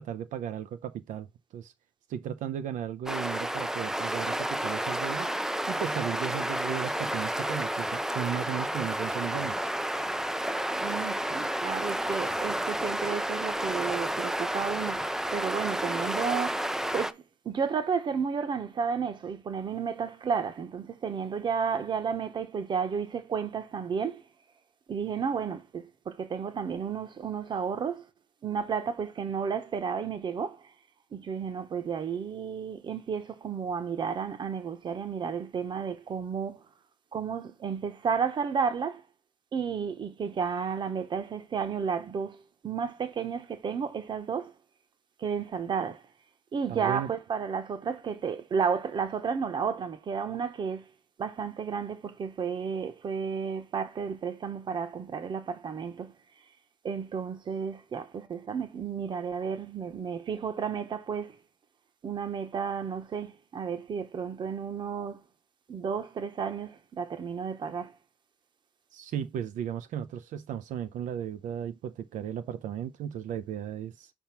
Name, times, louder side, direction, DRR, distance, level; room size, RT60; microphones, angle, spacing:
voice 1, 0.0-1.7 2.1-5.3 5.7-9.7 46.7-47.1 68.9-74.1, right 9 dB, 85° right, 0.6 m, -35 dB
sound 1, 3.1-17.1, right 1 dB, 5° right, 0.4 m, -31 dB
voice 2, 10.8-16.6 16.9-24.2 24.9-28.1 28.4-30.6 31.1-36.6 37.1-39.0 39.5-44.5 45.2-46.0 46.5-50.8 51.2-56.1 56.8-61.4 62.0-65.2 65.7-67.9, right 6 dB, 35° right, 1.0 m, -32 dB
5.7 x 3.6 x 5.9 m
cardioid pair, 170°, 13 cm